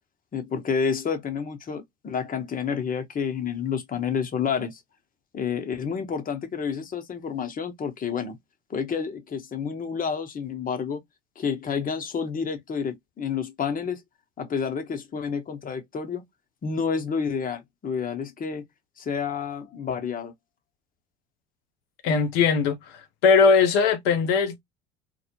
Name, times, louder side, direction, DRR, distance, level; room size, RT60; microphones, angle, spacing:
voice 1, 0.3-4.8 5.3-8.4 8.7-11.0 11.4-14.0 14.4-16.2 16.6-18.7 19.0-20.3, left 6 dB, 25° left, 0.7 m, -29 dB
voice 2, 22.0-22.8 23.2-24.6, left 5 dB, 70° left, 0.7 m, -19 dB
2.1 x 2.0 x 2.9 m
hypercardioid pair, 60°, 31 cm